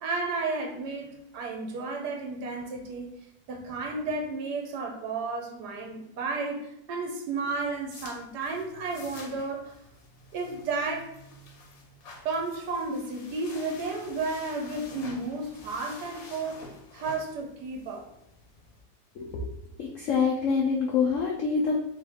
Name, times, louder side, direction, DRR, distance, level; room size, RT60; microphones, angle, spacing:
voice 1, 0.0-3.1 3.5-9.7 10.3-11.1 12.2-16.6 16.9-18.1, right 3 dB, 70° right, 2 dB, 1.2 m, -32 dB
sound 1, 7.5-18.8, left 2 dB, 60° left, 1.1 m, -49 dB
voice 2, 19.8-22.0, left 5 dB, 90° left, -1 dB, 0.6 m, -26 dB
3.6 x 3.0 x 3.4 m, 0.80 s
omnidirectional pair, 2.0 m